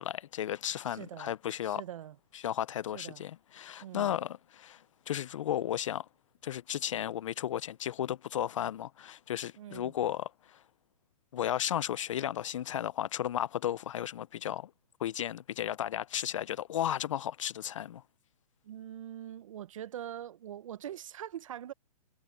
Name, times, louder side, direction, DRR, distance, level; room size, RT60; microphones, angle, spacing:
voice 1, 0.0-1.8 2.3-6.1 6.4-10.6 11.3-14.7 15.0-18.0, left 11 dB, 55° left, 0.5 m, -34 dB
voice 2, 0.9-1.3 1.6-2.2 2.9-3.2 3.8-4.1 9.6-9.9 18.6-21.7, right 11 dB, 60° right, 1.0 m, -43 dB
hypercardioid pair, 165°, 19 cm